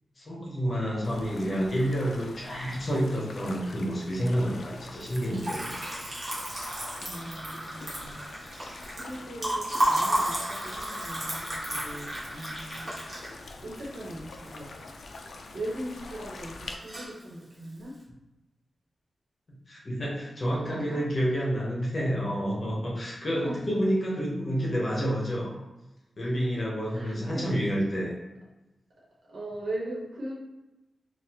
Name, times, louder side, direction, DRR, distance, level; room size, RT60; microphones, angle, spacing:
voice 1, 0.2-5.7 8.0-8.2 19.5-25.6 26.2-28.1, equal, 35° left, -3 dB, 0.9 m, -29 dB
sound 1, 1.0-16.7, left 3 dB, 65° left, 0.3 m, -45 dB
Liquid, 5.0-15.2 15.5-16.2 16.4-17.2, right 1 dB, 30° right, 1.2 m, -32 dB
voice 2, 7.0-8.2 8.9-12.9 13.6-14.7 15.5-18.0 20.6-21.0 23.4-23.8 26.9-27.5 29.3-30.3, right 1 dB, 80° right, -5 dB, 1.2 m, -39 dB
3.9 x 2.4 x 2.8 m, 1.0 s
wide cardioid pair, 175°, 0 cm